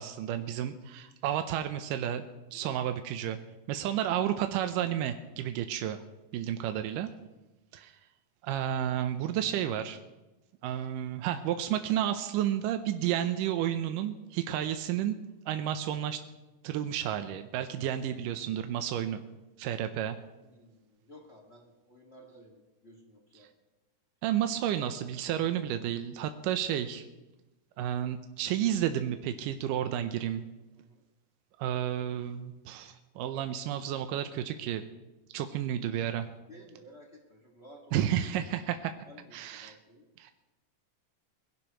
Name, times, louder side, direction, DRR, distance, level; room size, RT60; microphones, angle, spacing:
voice 1, 0.0-3.4 3.7-6.0 6.3-7.1 7.7-8.0 8.4-10.0 10.6-15.2 15.5-16.2 16.6-19.2 19.6-20.2 24.2-27.0 27.8-30.4 31.6-34.8 35.3-36.3 37.9-38.9 39.3-39.7 40.2-40.3, right 10 dB, 85° right, 7 dB, 2.3 m, -31 dB
voice 2, 20.4-23.5 30.7-31.0 36.5-38.5 39.1-40.0, equal, 25° left, 0 dB, 1.6 m, -54 dB
22.0 x 16.5 x 3.0 m, 1.0 s
omnidirectional pair, 3.8 m